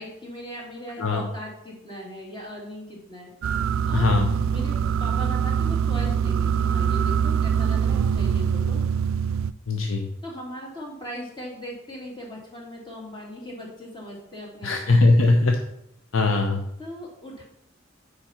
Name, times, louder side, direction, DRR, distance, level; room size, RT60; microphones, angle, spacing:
voice 1, 0.0-3.3 3.9-4.1 4.5-8.8 10.2-15.1 16.8-17.4, equal, 25° left, -2 dB, 2.4 m, -39 dB
sound 1, 3.4-9.5, right 7 dB, 90° right, 0.3 m, -23 dB
voice 2, 3.9-4.3 9.7-10.1 14.6-15.6 16.1-16.6, left 3 dB, 85° left, 3 dB, 0.7 m, -20 dB
7.2 x 5.1 x 5.7 m, 0.79 s
head